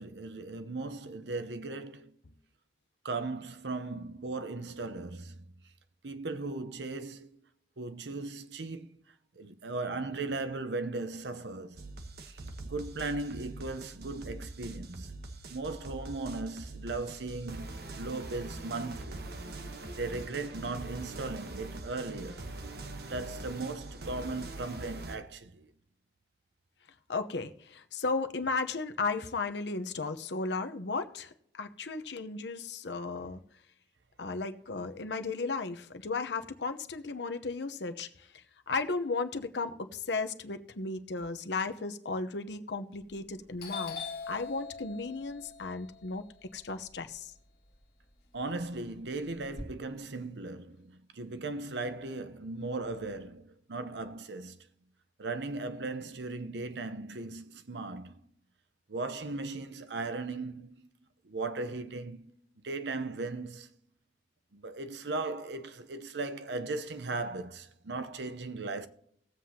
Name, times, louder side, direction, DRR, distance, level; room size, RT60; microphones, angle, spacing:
voice 1, 0.0-2.1 3.0-5.5 6.0-7.3 7.8-9.0 9.4-11.8 12.3-15.2 15.5-19.2 20.0-22.5 23.1-25.7 48.3-54.6 55.2-58.2 58.9-60.9 61.2-62.2 62.6-63.7 64.5-68.9, right 3 dB, 80° right, 0.8 m, -37 dB
sound 1, 11.8-25.2, right 2 dB, 60° right, 1.0 m, -43 dB
voice 2, 27.1-33.4 34.2-38.1 38.7-44.0 44.3-46.2 46.5-47.3, left 3 dB, 85° left, 0.8 m, -35 dB
Doorbell, 43.0-43.3 43.6-47.7 48.1-49.6, left 5 dB, 60° left, 1.9 m, -43 dB
19.0 x 7.6 x 2.8 m
head